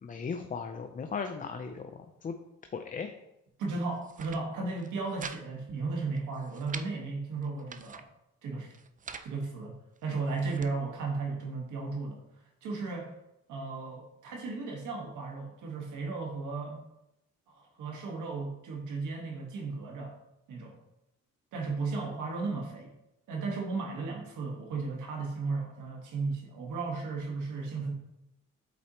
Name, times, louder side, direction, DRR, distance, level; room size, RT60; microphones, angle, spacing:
voice 1, 0.0-2.3 2.7-3.1, left 5 dB, 25° left, 6 dB, 0.5 m, -37 dB
voice 2, 3.6-8.0 8.4-8.7 9.2-9.7 10.0-12.2 12.6-13.1 13.5-16.8 17.5-20.2 20.5-20.8 21.5-22.9 23.3-27.9, right 3 dB, 80° right, 1 dB, 1.6 m, -35 dB
sound 1, 3.9-4.4 4.8-5.4 5.7-5.8 6.2-6.9 7.4-8.1 8.7-9.3 10.0-10.7, right 6 dB, 25° right, 0.4 m, -44 dB
8.2 x 4.2 x 3.0 m, 0.87 s
cardioid pair, 90°, 30 cm